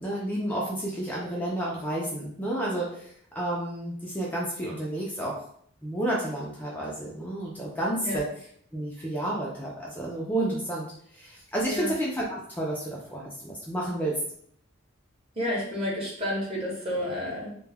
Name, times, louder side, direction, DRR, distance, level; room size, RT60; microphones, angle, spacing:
voice 1, 0.0-5.4 5.8-8.2 8.7-10.9 11.1-14.1, right 1 dB, 10° left, -4 dB, 0.4 m, -31 dB
voice 2, 15.3-17.6, left 1 dB, 30° right, -3 dB, 0.9 m, -30 dB
2.2 x 2.1 x 3.3 m, 0.64 s
head